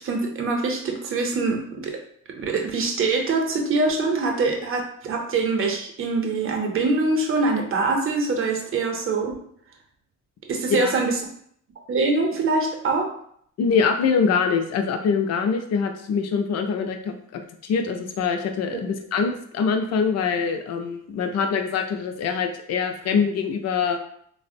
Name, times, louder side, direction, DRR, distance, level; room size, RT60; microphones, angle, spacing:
voice 1, 0.0-2.0 2.3-9.3 10.5-11.2 11.9-13.1, right 3 dB, 45° right, 2 dB, 0.7 m, -24 dB
voice 2, 13.6-24.0, left 5 dB, 60° left, 6 dB, 0.5 m, -24 dB
3.3 x 2.0 x 2.5 m, 0.66 s
cardioid pair, 90°, 30 cm